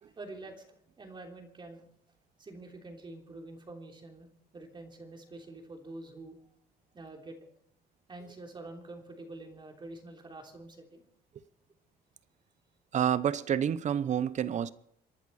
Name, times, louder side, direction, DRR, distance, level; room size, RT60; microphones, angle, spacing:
voice 1, 0.0-1.8 2.4-6.4 6.9-7.4 8.1-11.0, right 2 dB, 30° right, 3.3 m, -47 dB
voice 2, 12.9-14.7, right 9 dB, 45° right, 0.8 m, -28 dB
28.0 x 11.5 x 4.2 m
cardioid pair, 110°, 17 cm